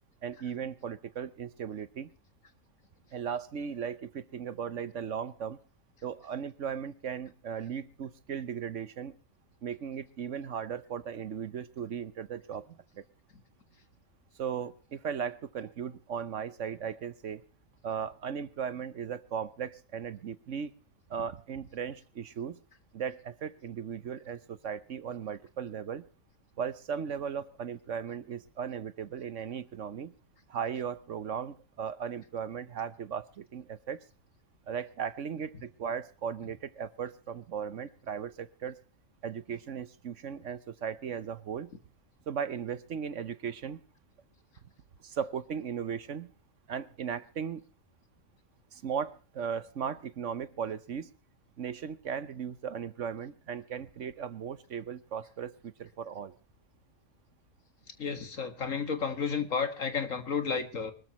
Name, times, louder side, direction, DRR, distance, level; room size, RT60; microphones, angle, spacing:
voice 1, 0.2-2.1 3.1-5.6 6.0-9.1 9.6-13.0 14.4-17.4 17.8-20.7 21.1-22.6 22.9-26.1 26.6-30.1 30.5-34.0 34.7-38.8 39.2-41.7 42.3-43.8 45.0-46.3 46.7-47.6 48.7-51.1 51.6-56.3, right 7 dB, 60° right, 15 dB, 1.2 m, -37 dB
voice 2, 58.0-60.9, left 5 dB, 65° left, 9 dB, 2.2 m, -32 dB
24.5 x 13.5 x 3.1 m, 0.37 s
omnidirectional pair, 1.5 m